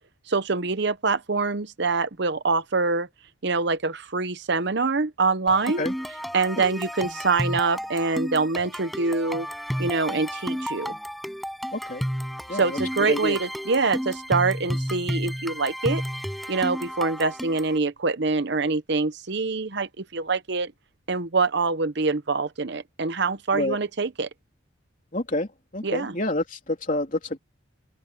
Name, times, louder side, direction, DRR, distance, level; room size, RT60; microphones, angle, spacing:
voice 1, 0.3-3.1 3.4-5.8 6.3-9.5 9.8-11.0 12.5-16.0 16.5-20.7 21.1-24.3 25.8-26.1, right 4 dB, 55° right, 0.9 m, -25 dB
sound 1, 5.5-17.8, equal, ahead, 7.2 m, -32 dB
voice 2, 11.7-12.0 12.5-12.8 13.1-13.4 23.5-23.8 25.1-25.5 25.7-27.4, left 1 dB, 40° left, 3.3 m, -28 dB
open air
head